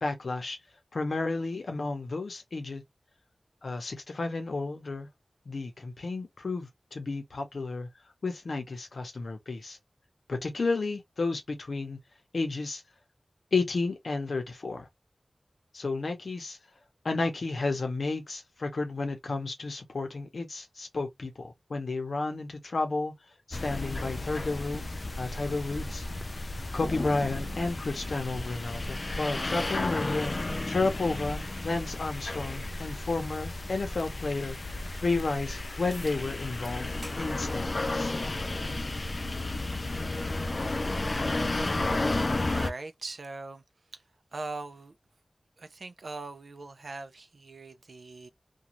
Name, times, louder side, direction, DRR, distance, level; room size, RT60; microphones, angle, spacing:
voice 1, 0.0-0.6 0.9-2.8 3.6-5.1 5.5-7.9 8.2-9.8 10.3-12.0 12.3-12.8 13.5-14.9 15.7-16.6 17.0-23.1 23.5-24.8 25.2-26.0 26.7-34.6 35.0-36.9 37.2-38.1, left 3 dB, 85° left, 0.7 m, -32 dB
sound 1, 23.5-42.7, left 2 dB, 45° left, 0.3 m, -33 dB
sound 2, 35.9-36.2 36.6-37.2 37.6-37.8 38.8-38.9 43.9-44.0, equal, 5° right, 0.9 m, -48 dB
voice 2, 42.5-43.6 44.3-45.0 45.6-48.3, right 3 dB, 85° right, 0.4 m, -40 dB
2.5 x 2.3 x 2.9 m
wide cardioid pair, 80°, 0 cm